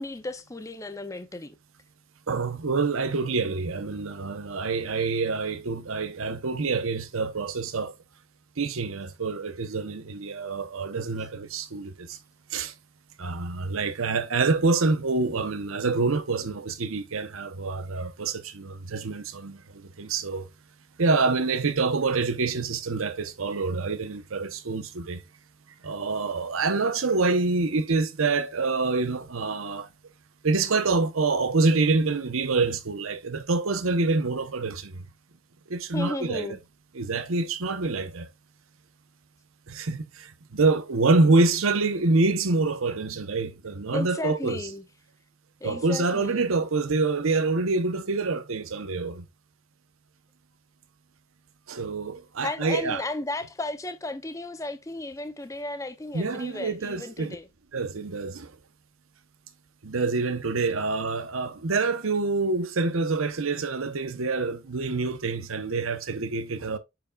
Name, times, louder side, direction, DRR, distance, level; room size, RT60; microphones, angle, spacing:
voice 1, 0.0-1.6 35.9-36.6 43.9-44.9 45.6-46.5 52.4-57.5, left 2 dB, 15° left, 0.5 m, -34 dB
voice 2, 2.3-7.9 8.6-12.2 12.5-12.7 13.2-20.5 21.0-25.2 25.8-29.9 30.4-35.0 35.7-36.5 36.9-38.3 39.7-44.6 45.6-49.2 51.7-53.0 56.1-57.4 57.7-58.5 59.8-66.8, right 3 dB, 80° right, 0.8 m, -26 dB
8.9 x 4.8 x 2.3 m
head